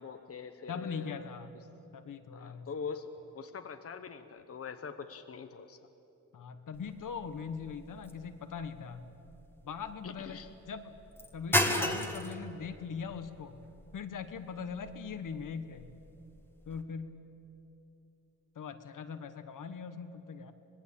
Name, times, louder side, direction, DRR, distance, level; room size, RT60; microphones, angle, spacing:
voice 1, 0.0-1.3 2.3-5.8 10.0-10.5, left 5 dB, 45° left, 8 dB, 1.0 m, -43 dB
voice 2, 0.7-1.5 1.9-2.7 6.3-9.1 9.6-10.4 10.7-11.0 11.3-13.6 13.9-15.9 16.7-17.2 18.5-20.5, left 6 dB, 70° left, 9 dB, 1.4 m, -41 dB
sound 1, 6.7-16.8, left 1 dB, 5° left, 1.8 m, -37 dB
25.5 x 19.5 x 8.6 m, 3.0 s
wide cardioid pair, 105°, 32 cm